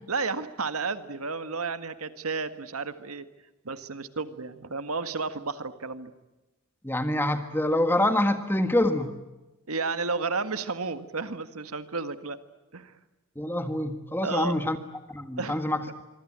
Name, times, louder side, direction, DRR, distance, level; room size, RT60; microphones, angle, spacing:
voice 1, 0.1-3.3 3.6-6.1 9.7-12.4 12.7-12.9 14.2-14.6 15.4-15.6, right 4 dB, 90° right, 11 dB, 1.8 m, -32 dB
voice 2, 6.8-9.1 13.3-14.8 15.1-15.8, left 1 dB, 10° left, 8 dB, 1.6 m, -26 dB
25.5 x 24.5 x 8.8 m, 1.1 s
head